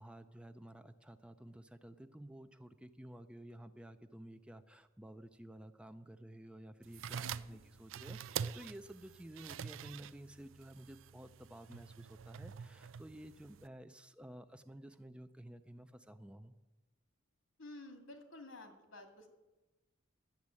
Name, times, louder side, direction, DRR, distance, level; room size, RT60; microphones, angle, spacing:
voice 1, 0.0-16.6, right 1 dB, 5° right, 9 dB, 0.5 m, -53 dB
sound 1, 6.8-13.7, right 7 dB, 70° right, 0.4 m, -46 dB
voice 2, 7.2-7.6 17.6-19.3, left 2 dB, 85° left, 5 dB, 2.2 m, -52 dB
12.0 x 7.3 x 9.6 m, 1.1 s
head